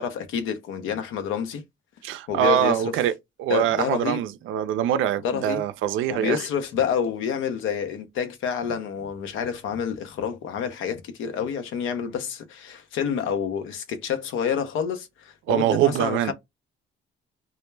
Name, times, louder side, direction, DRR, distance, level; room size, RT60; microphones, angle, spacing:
voice 1, 0.0-1.6 2.3-2.9 3.5-4.2 5.2-5.6 6.1-16.3, left 7 dB, 85° left, 0.6 m, -28 dB
voice 2, 2.0-3.1 3.4-6.4 15.5-16.3, right 11 dB, 85° right, 0.4 m, -23 dB
2.2 x 2.1 x 3.1 m
cardioid pair, 90°, 20 cm